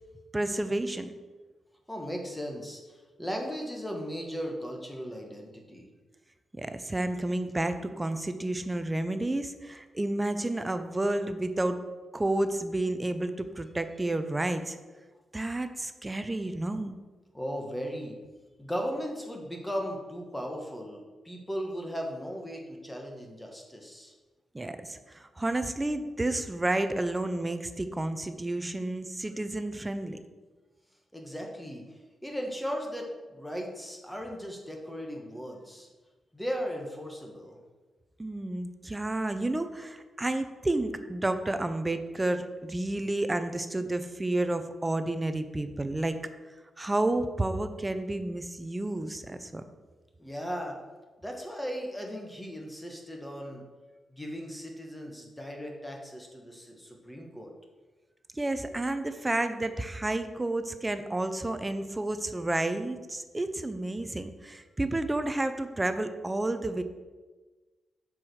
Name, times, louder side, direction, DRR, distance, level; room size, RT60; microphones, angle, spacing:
voice 1, 0.3-1.1 6.5-11.8 12.1-14.8 15.3-17.0 24.5-30.2 38.2-46.2 46.8-49.6 58.3-66.8, right 2 dB, 15° right, 9 dB, 0.5 m, -31 dB
voice 2, 1.9-5.9 17.3-18.2 18.6-24.1 31.1-31.9 32.2-35.9 36.3-37.6 50.2-50.8 51.2-53.6 54.1-57.5, equal, 5° left, 1 dB, 1.3 m, -37 dB
7.5 x 4.8 x 6.2 m, 1.3 s
wide cardioid pair, 145°, 0 cm